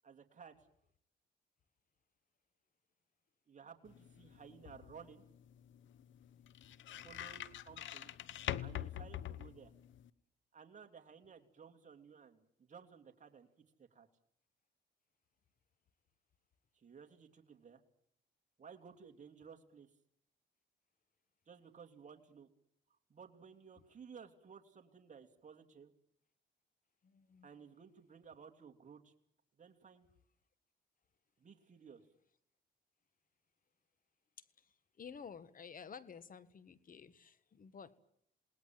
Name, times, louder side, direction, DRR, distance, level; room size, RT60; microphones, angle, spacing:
voice 1, 0.0-0.7 3.5-5.2 7.0-8.1 8.6-9.7 10.5-13.5 13.8-14.1 16.7-17.8 18.6-19.9 21.5-22.5 22.9-25.9 27.4-29.1 29.6-30.1 31.4-32.0, right 6 dB, 40° right, 5 dB, 2.9 m, -56 dB
sound 1, 3.8-10.1, left 12 dB, 75° left, 1.0 m, -45 dB
voice 2, 27.0-27.6 34.4-38.0, left 6 dB, 45° left, 15 dB, 1.7 m, -53 dB
28.5 x 19.5 x 7.7 m, 0.69 s
cardioid pair, 90°, 20 cm